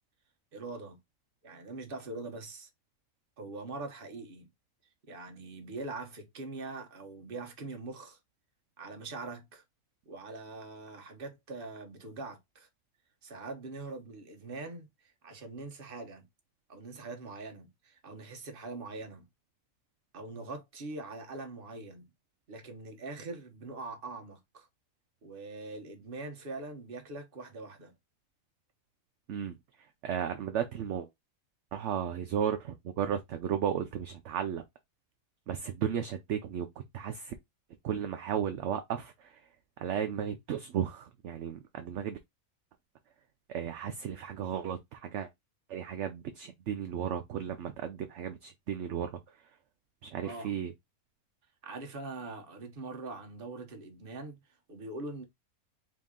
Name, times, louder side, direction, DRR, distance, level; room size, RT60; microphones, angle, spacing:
voice 1, 0.5-1.0 1.4-2.7 3.4-4.5 5.1-8.2 8.8-9.6 10.0-12.7 13.2-16.3 16.7-19.3 20.1-22.1 22.5-24.7 25.2-27.9 50.2-50.6 51.6-55.2, right 3 dB, 45° right, 1.1 m, -43 dB
voice 2, 30.0-31.1 31.7-34.6 35.5-36.7 36.9-37.3 37.8-39.4 39.8-42.2 43.5-45.3 45.7-49.2 50.0-50.7, right 9 dB, 65° right, 0.8 m, -34 dB
4.1 x 2.7 x 3.6 m
omnidirectional pair, 1.5 m